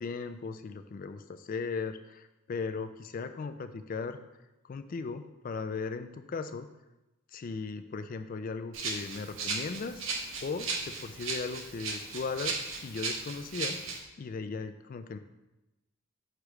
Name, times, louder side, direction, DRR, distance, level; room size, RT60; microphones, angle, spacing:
voice 1, 0.0-4.2 4.6-6.7 7.3-10.0 10.4-12.6 12.8-13.8 14.2-15.2, left 4 dB, 40° left, 10 dB, 0.3 m, -37 dB
Rattle (instrument), 8.7-14.0, right 4 dB, 60° right, 0.8 m, -36 dB
6.6 x 3.1 x 4.8 m, 0.99 s
head